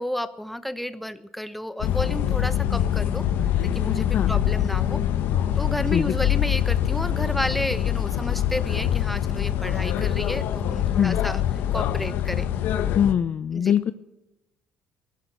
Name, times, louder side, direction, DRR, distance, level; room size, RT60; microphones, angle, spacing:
voice 1, 0.0-3.3 3.6-5.0 5.6-11.4 11.7-12.5 13.5-13.8, left 1 dB, 5° left, 13 dB, 0.9 m, -31 dB
sound 1, 1.8-13.1, left 10 dB, 70° left, 1.0 m, -24 dB
voice 2, 13.0-13.9, left 9 dB, 50° left, 13 dB, 0.6 m, -22 dB
16.0 x 11.5 x 6.7 m, 1.0 s
cardioid pair, 100°, 3 cm